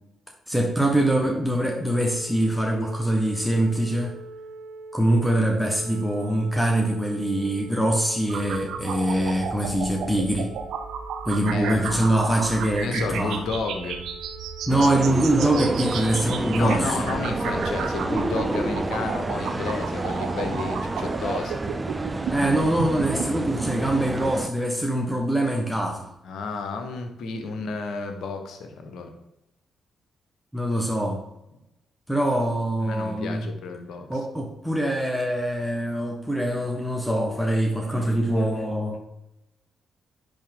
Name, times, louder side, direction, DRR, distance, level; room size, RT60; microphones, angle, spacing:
voice 1, 0.5-4.1 4.9-10.5 11.2-13.4 14.7-17.0 22.3-26.1 30.5-31.2 32.1-33.5 34.1-39.0, right 1 dB, 5° left, 1 dB, 1.4 m, -24 dB
sound 1, 1.8-19.8, right 3 dB, 90° right, 1.1 m, -44 dB
sound 2, 8.3-23.3, right 6 dB, 70° right, 0.6 m, -34 dB
voice 2, 11.5-12.3 12.8-14.0 16.5-21.6 26.2-29.1 32.8-34.2, left 4 dB, 65° left, 6 dB, 1.0 m, -32 dB
sound 3, 14.7-24.5, right 2 dB, 25° right, 0.6 m, -29 dB
10.0 x 3.7 x 3.6 m, 0.90 s
hypercardioid pair, 40°, 0 cm